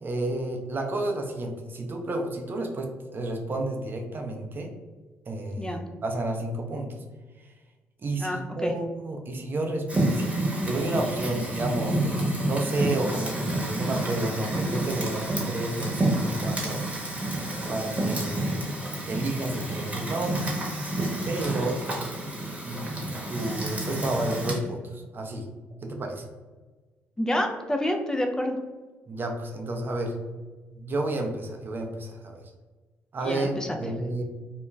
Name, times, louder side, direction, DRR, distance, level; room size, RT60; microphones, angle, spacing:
voice 1, 0.0-4.7 5.3-7.0 7.4-7.5 8.0-16.8 17.7-18.6 19.1-20.5 21.2-21.8 22.6-25.5 25.8-26.2 29.1-30.2 30.7-32.5 33.1-34.2, right 2 dB, 40° right, 2 dB, 0.6 m, -31 dB
voice 2, 8.2-8.7 27.2-28.6 33.2-33.7, left 1 dB, 10° left, 3 dB, 0.5 m, -28 dB
Fire, 9.9-24.5, right 1 dB, 25° right, 1.0 m, -29 dB
2.4 x 2.1 x 3.1 m, 1.3 s
supercardioid pair, 60°, 5 cm